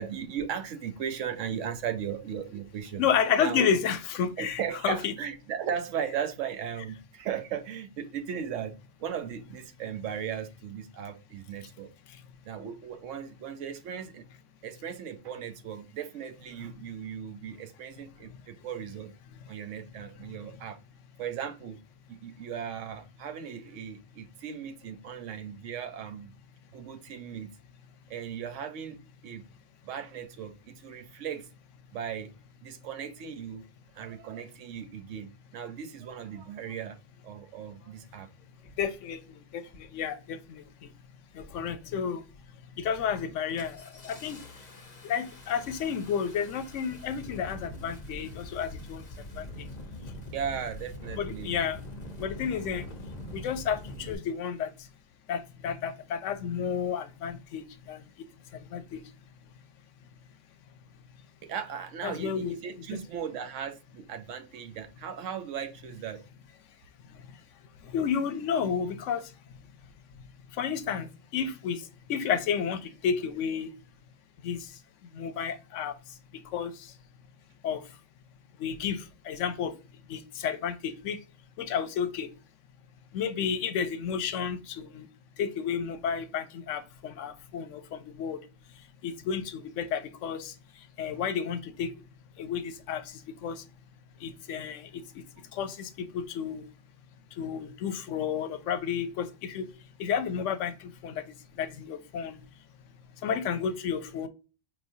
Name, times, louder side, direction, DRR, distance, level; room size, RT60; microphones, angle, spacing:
voice 1, 0.0-3.1 3.4-3.6 4.4-8.7 9.0-11.9 12.4-14.2 14.6-19.1 19.5-20.8 21.2-21.8 22.1-26.3 26.7-27.5 28.1-29.4 29.8-31.5 31.9-32.3 32.6-33.6 33.9-37.0 37.2-38.3 50.3-51.6 61.4-66.2, right 8 dB, 85° right, 1.0 m, -37 dB
voice 2, 3.0-5.1 38.8-39.2 39.5-39.6 39.9-40.6 41.4-42.2 42.8-44.4 45.0-49.0 49.4-49.7 51.1-51.8 52.2-52.8 53.3-54.7 55.3-57.6 57.9-58.0 58.7-59.0 62.0-62.6 62.9-63.0 67.9-69.2 70.6-71.1 71.3-71.8 72.1-73.7 74.4-74.6 75.1-75.9 76.5-76.7 77.6-77.8 78.6-79.7 80.1-81.2 81.6-82.3 83.1-85.1 85.4-88.4 89.0-90.5 91.0-91.9 92.4-93.0 93.4-93.6 94.2-94.9 95.5-96.6 97.4-99.7 100.0-100.7 101.0-101.2 101.6-102.4 103.2-104.3, left 7 dB, 80° left, 0.9 m, -31 dB
Engine starting, 37.8-37.9 38.6-39.0 39.7-40.0 40.3-40.9 41.3-41.9 42.2-42.4 42.8-54.2, left 1 dB, 40° left, 0.9 m, -44 dB
4.7 x 3.1 x 2.6 m
omnidirectional pair, 1.2 m